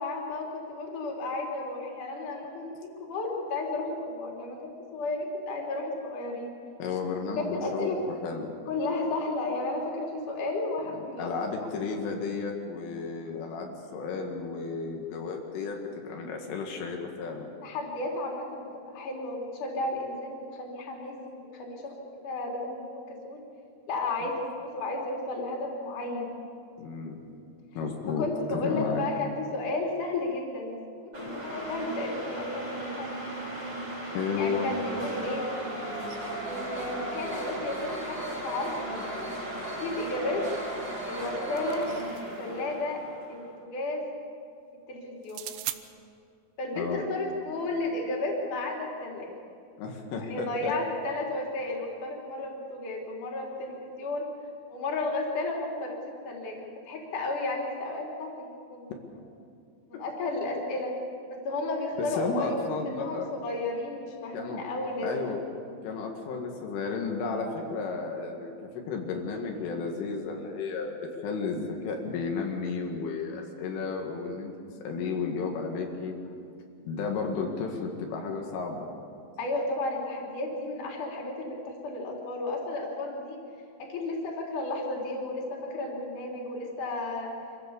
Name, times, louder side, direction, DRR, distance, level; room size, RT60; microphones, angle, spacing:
voice 1, 0.0-6.5 7.4-8.0 8.7-11.7 17.6-21.9 22.2-23.4 23.9-26.4 28.2-31.0 31.2-33.7 34.4-35.5 36.5-39.1 39.8-40.5 41.1-41.9 42.4-43.0 43.3-44.1 44.9-45.5 46.6-49.3 50.2-54.3 54.7-56.6 56.9-58.9 59.9-61.0 61.3-65.1 79.4-83.4 83.8-87.3, left 2 dB, 45° left, -1 dB, 4.2 m, -33 dB
voice 2, 6.8-8.5 11.2-17.5 24.2-24.3 26.8-27.3 27.7-29.0 34.1-34.7 46.8-47.0 49.8-50.7 62.0-63.3 64.3-64.6 65.0-65.4 65.8-71.0 71.2-74.5 74.8-76.1 76.8-78.9, left 4 dB, 85° left, 1 dB, 4.4 m, -33 dB
sound 1, 31.1-43.4, right 1 dB, 30° right, 5.5 m, -36 dB
sound 2, 41.6-42.5 45.2-45.8, right 15 dB, 80° right, 2.6 m, -39 dB
26.0 x 15.5 x 7.0 m, 2.4 s
omnidirectional pair, 5.5 m